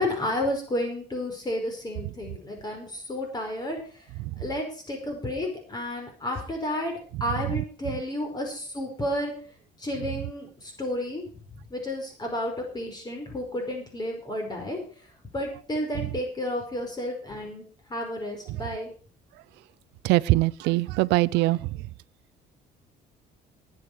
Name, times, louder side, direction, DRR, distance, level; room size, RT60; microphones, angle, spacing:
voice 1, 0.0-3.8 4.4-9.3 9.8-11.2 11.7-14.8 15.3-17.6 17.9-18.9, left 1 dB, 25° left, 2 dB, 5.0 m, -31 dB
voice 2, 20.0-21.7, right 19 dB, 90° right, 20 dB, 0.5 m, -22 dB
19.0 x 8.3 x 4.8 m, 0.39 s
cardioid pair, 110°, 17 cm